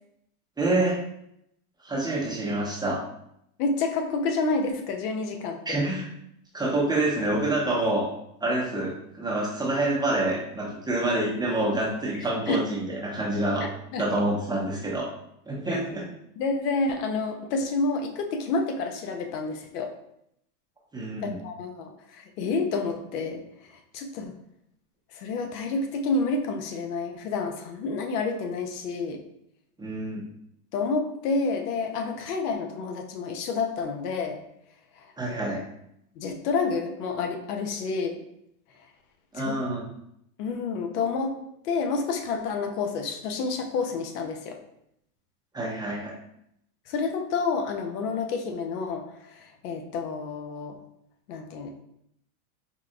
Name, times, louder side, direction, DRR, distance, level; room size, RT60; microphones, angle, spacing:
voice 1, 0.6-1.0 1.8-3.0 5.7-6.1 6.5-8.1 8.4-13.7 14.0-15.1 15.5-16.1 20.9-21.4 29.8-30.3 35.2-35.6 39.3-39.8 45.5-46.1, right 2 dB, 10° right, -5 dB, 0.8 m, -27 dB
voice 2, 3.6-5.8 12.1-12.6 13.9-14.0 15.7-15.8 16.4-19.9 21.2-23.4 23.7-24.3 25.1-29.2 30.7-34.4 35.0-35.4 36.2-38.2 39.3-39.6 40.4-41.3 41.6-44.6 46.9-50.8 51.3-51.7, left 4 dB, 85° left, 4 dB, 0.7 m, -29 dB
4.5 x 2.4 x 2.3 m, 0.75 s
supercardioid pair, 115°, 46 cm